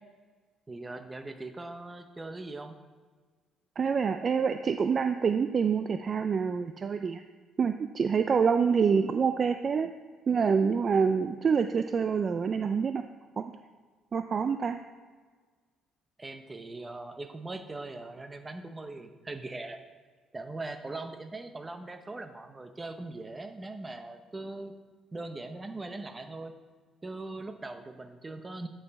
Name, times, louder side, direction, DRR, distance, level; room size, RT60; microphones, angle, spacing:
voice 1, 0.7-2.8 16.2-19.8 20.3-24.7 25.1-26.6 27.0-28.7, right 2 dB, 20° right, 7 dB, 0.7 m, -40 dB
voice 2, 3.8-7.2 7.6-9.9 10.3-13.0 13.4-13.5 14.1-14.8, right 6 dB, 40° right, 8 dB, 0.3 m, -26 dB
9.3 x 5.6 x 4.1 m, 1.5 s
cardioid pair, 110°, 0 cm